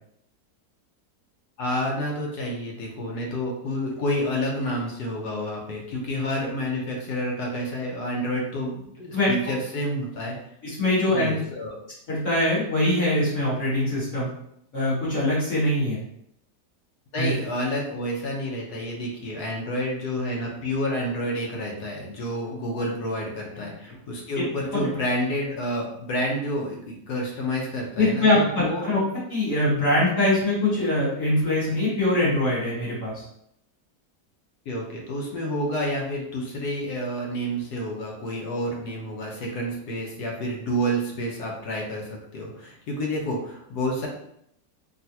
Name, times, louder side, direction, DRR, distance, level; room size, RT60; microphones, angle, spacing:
voice 1, 1.6-10.4 11.1-11.8 17.1-28.8 34.7-44.1, equal, 80° left, -2 dB, 1.4 m, -29 dB
voice 2, 10.6-11.3 12.1-14.3 14.7-16.0 17.2-17.3 24.4-24.5 24.7-24.9 28.0-28.4 28.8-29.0 29.3-33.2, left 1 dB, 50° left, -10 dB, 1.7 m, -23 dB
3.5 x 2.5 x 2.7 m, 0.73 s
omnidirectional pair, 1.8 m